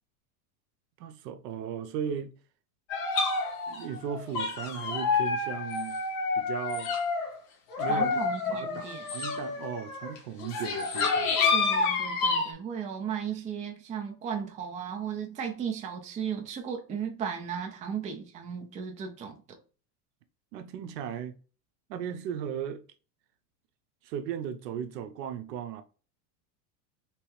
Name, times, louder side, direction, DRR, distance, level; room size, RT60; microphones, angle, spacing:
voice 1, 1.0-2.3 3.7-6.0 6.4-6.9 7.8-8.1 8.5-11.4 20.5-21.4 21.9-22.8 24.0-25.8, right 8 dB, 80° right, 0.8 m, -36 dB
sound 1, 2.9-7.3 7.7-12.5, left 4 dB, 45° left, 1.3 m, -29 dB
voice 2, 7.9-9.1 11.5-19.4, right 7 dB, 15° right, 0.5 m, -35 dB
3.3 x 3.0 x 3.1 m
supercardioid pair, 145°, 48 cm